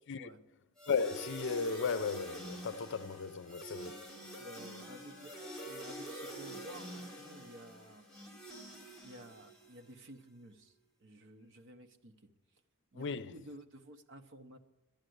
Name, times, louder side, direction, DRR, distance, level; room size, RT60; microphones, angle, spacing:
sound 1, 0.8-9.9, right 1 dB, ahead, 3.2 m, -47 dB
voice 1, 0.9-4.0 12.9-13.3, left 5 dB, 55° left, 0.5 m, -35 dB
voice 2, 4.4-8.1 9.0-12.3 12.9-14.6, equal, 60° right, 1.0 m, -53 dB
11.5 x 10.5 x 7.8 m
head